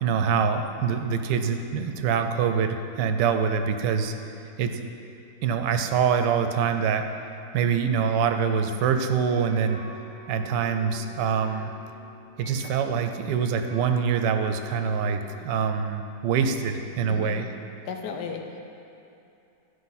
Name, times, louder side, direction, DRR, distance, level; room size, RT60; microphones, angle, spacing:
voice 1, 0.0-4.1 4.6-4.9 5.4-7.0 7.5-9.8 10.3-11.7 12.4-17.5, right 6 dB, 85° right, 7 dB, 1.2 m, -25 dB
sound 1, 9.0-15.4, equal, 30° right, 0.5 m, -47 dB
voice 2, 17.1-17.5 17.9-18.6, left 6 dB, 75° left, 3 dB, 1.3 m, -35 dB
11.5 x 4.9 x 4.0 m, 2.7 s
omnidirectional pair, 1.8 m